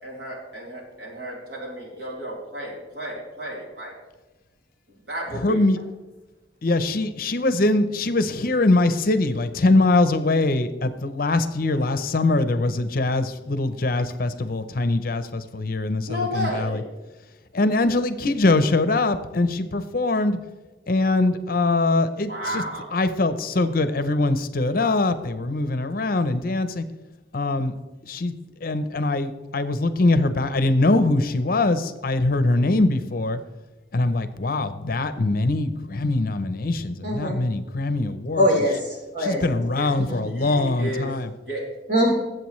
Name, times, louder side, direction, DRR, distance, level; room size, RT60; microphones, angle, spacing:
voice 1, 0.0-3.9 4.9-5.6 16.1-16.8 22.3-23.0 39.7-39.9 40.3-41.1 41.5-41.6, equal, 65° right, -3 dB, 3.6 m, -32 dB
voice 2, 5.4-5.8 6.6-16.8 17.5-20.4 20.9-22.6 22.9-26.8 27.3-27.7 28.0-28.3 28.6-33.4 33.9-38.5 39.2-41.3, left 2 dB, 50° left, 11 dB, 0.7 m, -22 dB
voice 3, 37.0-37.4 38.4-39.4 40.0-40.2 41.9-42.1, equal, 45° right, -4 dB, 4.0 m, -22 dB
20.0 x 7.8 x 3.2 m, 1.1 s
head